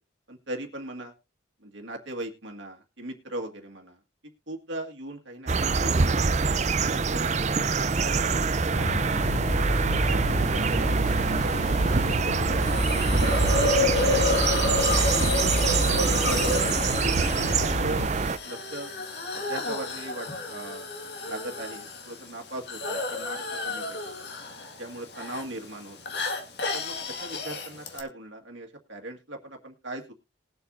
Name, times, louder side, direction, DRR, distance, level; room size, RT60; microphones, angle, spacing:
voice 1, 0.3-1.1 1.6-4.0 4.5-6.3 6.9-9.1 9.5-12.6 13.1-15.5 16.0-18.1 18.4-18.9 19.3-20.9 21.2-24.3 24.8-26.2 26.7-30.1, right 1 dB, 70° right, 2 dB, 2.0 m, -39 dB
sound 1, 5.5-18.4, right 4 dB, 35° right, 0.5 m, -25 dB
sound 2, 8.7-18.1, left 1 dB, 35° left, 3.4 m, -31 dB
Hiss, 12.6-28.0, left 3 dB, 55° left, 1.9 m, -31 dB
20.0 x 8.0 x 2.7 m, 0.26 s
head